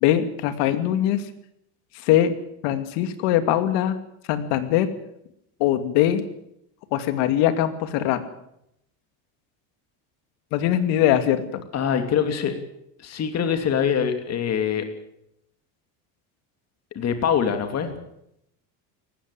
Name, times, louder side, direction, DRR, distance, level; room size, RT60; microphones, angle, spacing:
voice 1, 0.0-1.2 2.0-2.3 2.6-4.0 4.3-4.9 5.6-6.2 6.9-8.2 10.5-11.6, left 11 dB, 75° left, 10 dB, 2.6 m, -21 dB
voice 2, 11.7-12.5 13.0-14.9 16.9-17.9, left 7 dB, 35° left, 7 dB, 2.8 m, -24 dB
19.0 x 15.5 x 9.2 m, 0.79 s
cardioid pair, 140°, 43 cm